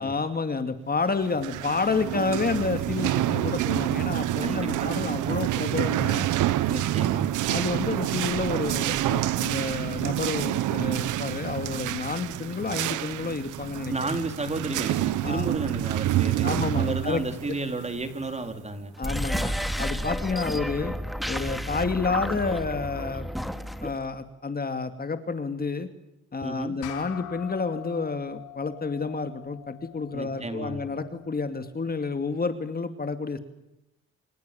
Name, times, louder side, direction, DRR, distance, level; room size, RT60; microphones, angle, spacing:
voice 1, 0.0-6.3 7.5-13.9 15.2-15.5 16.4-17.2 17.5-17.6 19.0-20.9 21.3-23.3 23.8-25.9 26.3-33.4, left 4 dB, 30° left, 8 dB, 2.4 m, -30 dB
sound 1, 1.2-18.7, right 13 dB, 85° right, 1.2 m, -28 dB
voice 2, 4.4-5.4 6.7-7.3 13.9-18.9 26.4-26.7 30.1-30.9, right 2 dB, 20° right, 7 dB, 4.3 m, -33 dB
sound 2, 19.0-24.0, equal, ahead, 2.3 m, -31 dB
sound 3, 26.8-31.6, left 14 dB, 85° left, 4.3 m, -44 dB
28.0 x 28.0 x 7.1 m, 0.89 s
cardioid pair, 90°, 30 cm